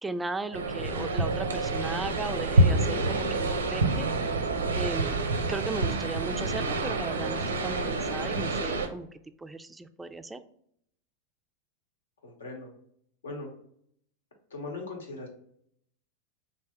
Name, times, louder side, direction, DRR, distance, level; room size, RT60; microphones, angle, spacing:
voice 1, 0.0-4.1 4.8-9.1 9.4-10.4, right 3 dB, 10° right, 10 dB, 0.3 m, -36 dB
sound 1, 0.5-8.9, right 2 dB, 90° right, 0.5 m, -27 dB
voice 2, 12.2-12.7 13.2-13.5 14.5-15.3, left 3 dB, 80° left, 3 dB, 0.9 m, -39 dB
3.4 x 2.7 x 3.4 m, 0.67 s
hypercardioid pair, 95°, 0 cm